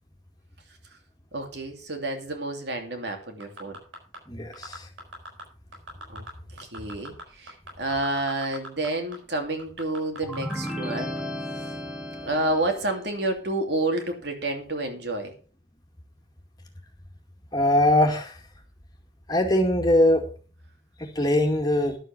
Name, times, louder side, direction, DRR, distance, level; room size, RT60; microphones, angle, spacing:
voice 1, 1.3-3.8 6.1-6.2 6.6-11.1 12.2-15.3, right 2 dB, 60° right, 4 dB, 2.8 m, -29 dB
sound 1, 3.4-4.2 4.5-5.4 5.7-6.3 6.6-8.9 9.1-9.2 9.6-10.7 11.2-11.3, right 2 dB, 90° right, 6.0 m, -40 dB
voice 2, 4.3-4.9 17.5-18.3 19.3-20.2 21.0-22.0, left 1 dB, 20° left, 3 dB, 2.1 m, -21 dB
sound 2, 10.2-13.0, equal, 5° right, 1.6 m, -34 dB
11.5 x 8.0 x 6.0 m, 0.39 s
head